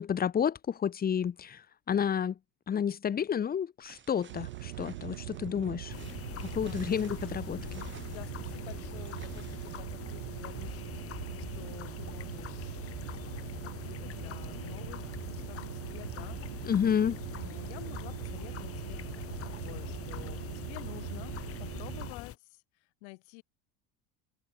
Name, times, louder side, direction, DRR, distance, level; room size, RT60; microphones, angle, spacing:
voice 1, 0.0-2.4 2.7-5.9 6.4-7.8 16.6-17.2, left 8 dB, 25° left, 1.3 m, -30 dB
sound 1, 3.8-9.8, right 8 dB, 35° right, 3.8 m, -54 dB
sound 2, 4.3-22.1, right 18 dB, 90° right, 1.4 m, -41 dB
sound 3, 5.9-22.4, left 11 dB, 40° left, 2.6 m, -43 dB
voice 2, 6.6-7.0 7.8-12.8 13.6-16.7 17.4-19.0 19.4-23.4, left 33 dB, 75° left, 5.7 m, -50 dB
supercardioid pair, 100°, 34 cm